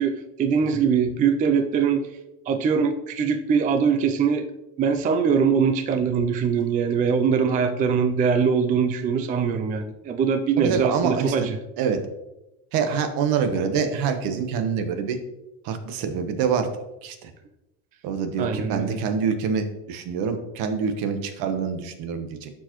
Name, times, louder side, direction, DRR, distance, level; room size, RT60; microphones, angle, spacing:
voice 1, 0.0-2.1 2.5-4.5 4.8-11.6 18.4-19.0, right 6 dB, 20° right, 7 dB, 0.3 m, -22 dB
voice 2, 10.6-11.5 11.8-12.0 12.7-15.2 15.6-16.7 17.0-17.3 18.0-22.5, right 6 dB, 60° right, 7 dB, 1.1 m, -26 dB
11.5 x 4.7 x 3.0 m, 0.95 s
cardioid pair, 140°, 40 cm